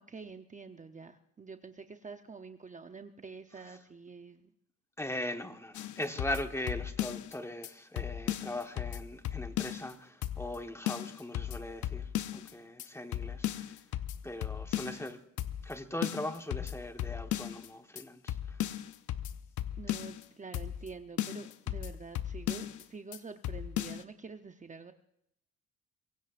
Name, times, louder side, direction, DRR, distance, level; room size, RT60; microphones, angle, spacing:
voice 1, 0.0-4.5 12.8-13.0 19.8-24.9, right 4 dB, 25° right, 0.8 m, -47 dB
voice 2, 5.0-13.7 14.2-15.2 15.6-18.6, left 1 dB, 10° left, 1.4 m, -40 dB
sound 1, 5.7-7.3 7.6-7.7 8.0-9.9 10.2-10.6 10.9-12.5 12.8-12.9 13.1-15.1 15.4-15.7 16.0-17.7 18.0-18.1 18.3-20.2 20.5-20.9 21.2-22.8 23.1-23.2 23.4-24.0, left 12 dB, 75° left, 0.8 m, -36 dB
24.0 x 17.0 x 2.6 m
cardioid pair, 90°, 30 cm